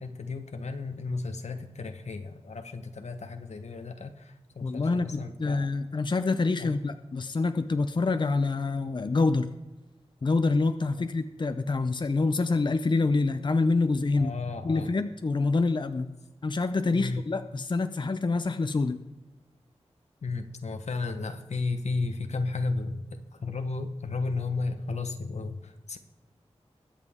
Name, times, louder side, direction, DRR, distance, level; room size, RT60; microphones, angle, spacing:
voice 1, 0.0-5.7 6.6-6.7 10.9-11.0 14.2-14.9 16.9-17.2 20.2-26.0, left 3 dB, 80° left, 7 dB, 1.1 m, -33 dB
voice 2, 4.6-9.5 10.2-14.3 14.6-16.1 16.4-19.0, left 3 dB, 45° left, 9 dB, 0.6 m, -26 dB
21.5 x 7.5 x 3.6 m, 1.1 s
wide cardioid pair, 95°, 11 cm